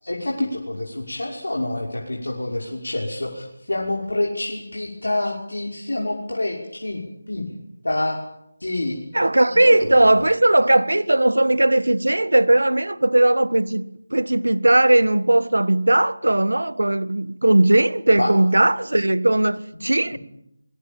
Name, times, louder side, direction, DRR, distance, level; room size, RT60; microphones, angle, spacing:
voice 1, 0.0-7.5 7.8-8.2 8.6-9.0 9.5-9.9 18.2-18.3 19.7-20.2, left 1 dB, 75° left, 5.9 m, -27 dB
voice 2, 9.1-13.8 14.1-20.2, right 1 dB, 80° right, 1.5 m, -18 dB
24.5 x 22.5 x 9.0 m
figure-of-eight pair, 165°, 0 cm